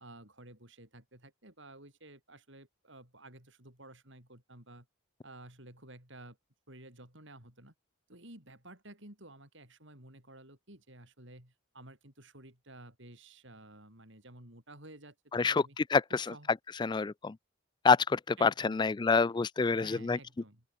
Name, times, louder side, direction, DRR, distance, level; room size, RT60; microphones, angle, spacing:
voice 1, 0.0-4.9 5.2-6.4 6.7-7.7 8.1-15.8 16.3-16.5 18.4-18.9 19.7-20.6, right 1 dB, 60° right, 7.9 m, -53 dB
voice 2, 15.3-16.3 16.8-17.4 17.8-20.2, left 4 dB, 20° left, 0.3 m, -27 dB
open air
head